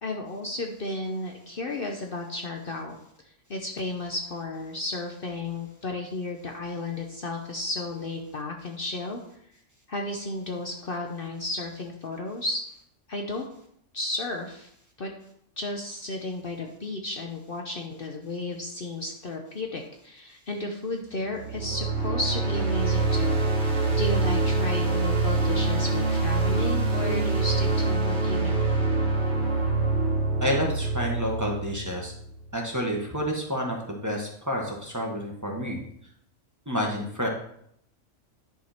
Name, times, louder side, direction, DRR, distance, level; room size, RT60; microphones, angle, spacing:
voice 1, 0.0-3.0 3.2-9.2 9.9-12.6 13.1-13.4 13.9-14.7 15.0-15.1 15.6-23.4 24.0-28.6, left 2 dB, 50° left, 2 dB, 0.9 m, -33 dB
sound 1, 21.3-32.3, right 3 dB, 60° right, 1.5 m, -25 dB
voice 2, 30.4-32.1 32.5-35.8 36.7-37.3, equal, 15° right, -1 dB, 1.4 m, -29 dB
10.5 x 4.9 x 4.4 m, 0.70 s
omnidirectional pair, 1.3 m